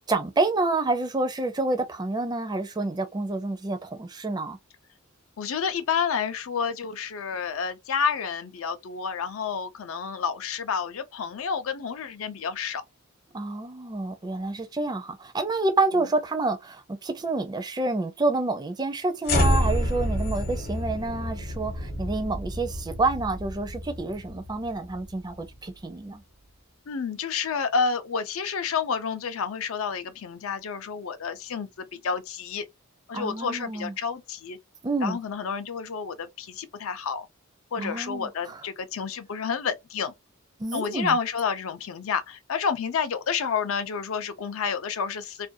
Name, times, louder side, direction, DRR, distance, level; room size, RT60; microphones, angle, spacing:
voice 1, 0.1-4.6 13.3-26.2 33.1-33.9 34.8-35.2 37.8-38.6 40.6-41.2, right 3 dB, 20° right, 0.4 m, -28 dB
voice 2, 5.4-12.8 26.9-32.6 33.1-34.6 35.0-37.3 37.7-40.1 40.7-45.5, left 6 dB, 70° left, 0.5 m, -29 dB
sound 1, 19.2-25.6, left 1 dB, 50° left, 0.9 m, -28 dB
2.5 x 2.2 x 2.5 m
head